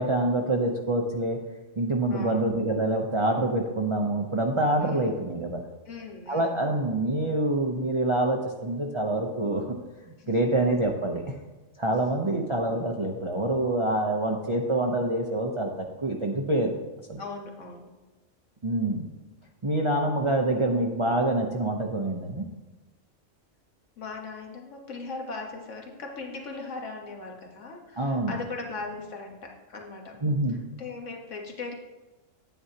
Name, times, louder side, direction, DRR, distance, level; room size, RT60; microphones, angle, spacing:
voice 1, 0.0-1.4 1.8-5.6 6.3-9.6 10.1-11.2 11.8-16.8 17.1-17.2 18.6-19.0 19.6-22.5 28.0-28.3 30.2-30.6, right 1 dB, 30° right, 0 dB, 0.6 m, -26 dB
voice 2, 2.1-2.4 4.8-5.2 5.9-6.6 10.2-10.5 11.9-12.3 17.2-17.9 24.0-30.2 30.8-31.7, left 3 dB, 70° left, 1 dB, 1.7 m, -39 dB
9.7 x 9.3 x 2.8 m, 1.1 s
omnidirectional pair, 1.3 m